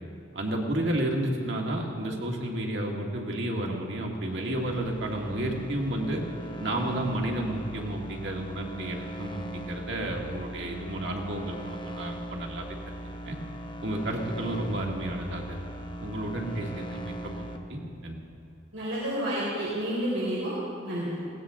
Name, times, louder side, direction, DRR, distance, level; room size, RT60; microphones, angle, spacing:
voice 1, 0.3-6.2 6.6-12.7 13.2-13.4 13.8-15.6 16.0-17.4 17.7-18.2, right 1 dB, 60° right, -1 dB, 2.2 m, -31 dB
sound 1, 4.1-17.6, right 1 dB, 25° left, 0.9 m, -40 dB
voice 2, 18.7-20.6 20.8-21.2, equal, 90° right, -7 dB, 4.2 m, -30 dB
20.0 x 17.5 x 3.8 m, 2.4 s
head